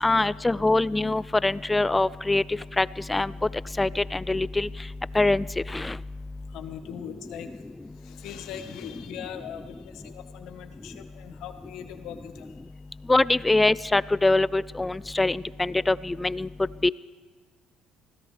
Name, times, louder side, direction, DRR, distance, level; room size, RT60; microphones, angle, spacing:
voice 1, 0.0-2.4 2.8-3.3 3.8-4.7 5.1-5.5 5.7-6.0 13.1-16.5 16.8-16.9, left 2 dB, 15° left, 20 dB, 0.3 m, -23 dB
voice 2, 6.5-7.5 8.0-12.5, left 9 dB, 75° left, 7 dB, 1.3 m, -40 dB
24.5 x 16.5 x 3.4 m, 1.5 s
cardioid pair, 110°, 0 cm